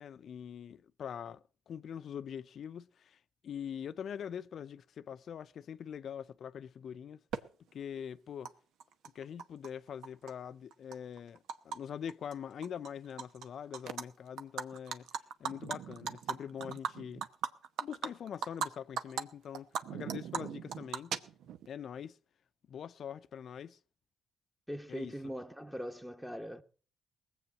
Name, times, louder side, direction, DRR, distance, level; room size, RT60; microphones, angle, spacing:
voice 1, 0.0-7.2 7.7-8.5 9.1-15.1 15.4-17.2 17.8-21.1 21.7-22.2 22.7-23.8 24.9-25.3, left 8 dB, 60° left, 0.6 m, -43 dB
Animal, 7.3-7.4 8.4-8.5 8.8-9.7 10.0-11.8 12.1-12.3 12.6-13.4 13.7-14.0 14.4-18.7 19.0-19.2 19.5-21.7, right 7 dB, 80° right, 0.9 m, -38 dB
voice 2, 24.7-26.6, equal, 5° right, 1.1 m, -41 dB
19.5 x 7.9 x 6.0 m
cardioid pair, 90°, 0 cm